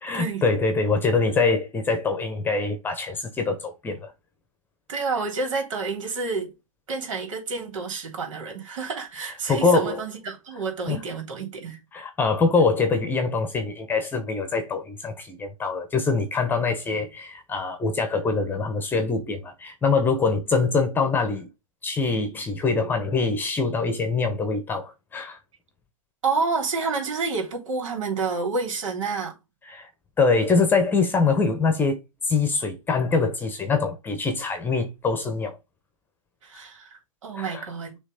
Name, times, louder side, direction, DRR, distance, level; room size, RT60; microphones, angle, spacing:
voice 1, 0.0-4.1 9.5-10.0 10.9-11.0 11.9-21.5 21.8-25.4 29.7-29.9 30.2-32.0 32.2-35.6 37.4-37.7, left 4 dB, 10° left, 1.2 m, -24 dB
voice 2, 4.9-6.5 6.9-11.8 26.2-29.4 36.4-36.9 37.2-38.0, right 4 dB, 65° right, 3.5 m, -29 dB
6.4 x 3.4 x 4.9 m
hypercardioid pair, 135°, 18 cm